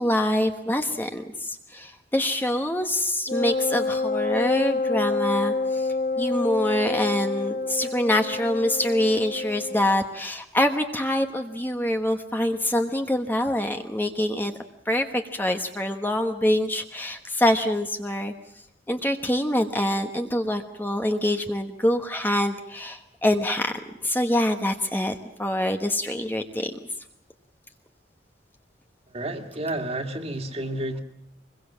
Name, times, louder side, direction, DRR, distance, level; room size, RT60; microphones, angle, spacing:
voice 1, 0.0-14.5 14.9-18.3 18.9-26.8, left 1 dB, 10° left, 5 dB, 1.2 m, -25 dB
Wind instrument woodwind instrument, 3.3-9.9, left 3 dB, 45° left, 1.0 m, -27 dB
voice 2, 29.1-31.0, right 1 dB, 35° right, 4 dB, 2.2 m, -30 dB
25.5 x 22.0 x 7.4 m, 0.76 s
head